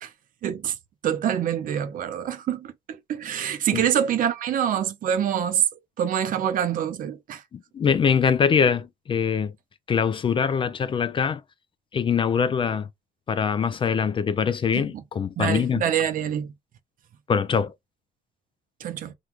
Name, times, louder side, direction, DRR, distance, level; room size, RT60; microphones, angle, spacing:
voice 1, 0.4-0.7 1.0-5.6 6.0-7.4 14.7-14.8 15.4-16.5 18.8-19.1, right 9 dB, 55° right, 0.6 m, -26 dB
voice 2, 7.5-9.5 9.9-11.4 11.9-12.9 13.3-15.8 17.3-17.7, left 6 dB, 30° left, 0.4 m, -23 dB
2.9 x 2.4 x 3.4 m
cardioid pair, 110°, 17 cm